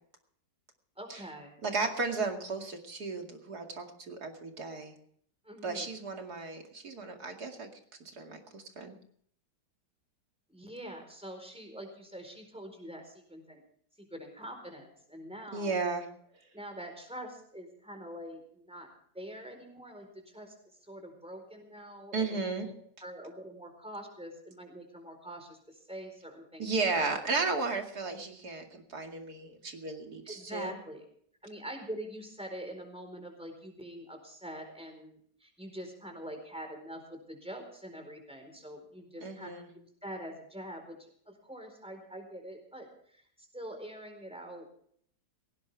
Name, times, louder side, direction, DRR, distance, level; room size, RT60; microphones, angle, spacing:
voice 1, 1.0-1.5 5.4-5.9 10.5-13.6 14.1-15.7 16.5-18.9 19.1-20.5 20.8-22.4 23.0-26.7 30.2-31.0 31.4-39.5 40.0-44.6, equal, 5° right, 4 dB, 4.3 m, -44 dB
voice 2, 1.6-4.9 5.6-7.7 8.2-8.9 15.5-16.1 22.1-22.7 26.6-30.8 39.2-39.7, right 3 dB, 60° right, 3 dB, 2.9 m, -34 dB
18.5 x 17.5 x 3.5 m, 0.62 s
omnidirectional pair, 1.9 m